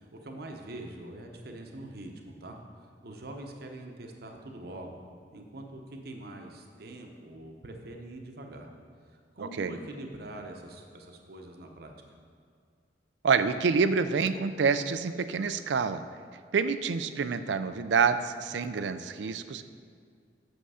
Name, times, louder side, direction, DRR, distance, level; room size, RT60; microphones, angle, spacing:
voice 1, 0.0-2.6 3.0-5.0 5.3-8.7 9.1-11.9, right 1 dB, 60° right, 3 dB, 0.8 m, -44 dB
voice 2, 13.2-16.0 16.5-19.6, right 5 dB, 80° right, 11 dB, 0.4 m, -27 dB
7.9 x 6.5 x 4.9 m, 2.2 s
head